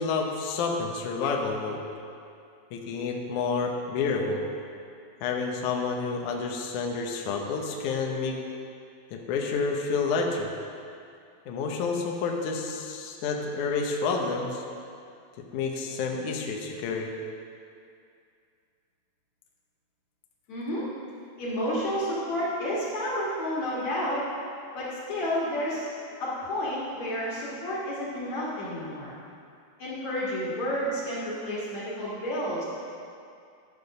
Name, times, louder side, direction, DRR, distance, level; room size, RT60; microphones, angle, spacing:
voice 1, 0.0-1.8 2.7-4.5 5.2-8.3 9.1-10.5 11.5-14.6 15.5-17.1, left 4 dB, 90° left, 1 dB, 1.7 m, -29 dB
voice 2, 20.5-20.9 21.4-24.2 24.7-25.9 26.2-29.2 29.8-32.6, equal, 55° left, -7 dB, 2.4 m, -30 dB
12.0 x 6.7 x 5.4 m, 2.4 s
omnidirectional pair, 5.0 m